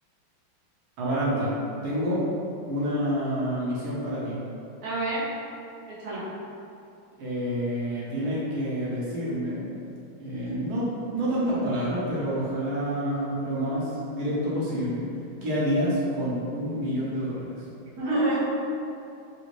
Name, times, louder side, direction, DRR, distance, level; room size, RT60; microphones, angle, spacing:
voice 1, 1.0-1.5 1.8-2.2 2.7-4.4 7.2-9.7 10.2-10.8 11.1-15.0 15.4-17.7, equal, 80° right, -7 dB, 1.7 m, -28 dB
voice 2, 4.8-5.3 5.9-6.3 18.0-18.4, right 2 dB, 55° right, -9 dB, 1.3 m, -27 dB
4.1 x 2.7 x 3.0 m, 2.6 s
omnidirectional pair, 2.2 m